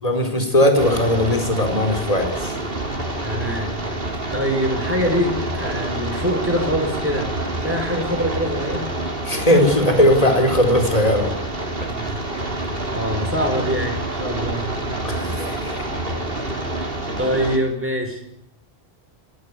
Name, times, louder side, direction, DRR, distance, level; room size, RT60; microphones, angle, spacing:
voice 1, 0.0-2.5 9.3-11.3 15.0-15.7, left 1 dB, 35° left, 5 dB, 4.4 m, -18 dB
sound 1, 0.8-17.6, right 1 dB, 60° right, 3.5 m, -27 dB
voice 2, 3.2-3.9 4.3-7.3 7.6-8.9 11.8-12.2 12.9-14.8 16.8-16.9 17.2-18.2, equal, 10° right, 3 dB, 5.5 m, -24 dB
24.5 x 14.5 x 9.6 m, 0.76 s
omnidirectional pair, 1.1 m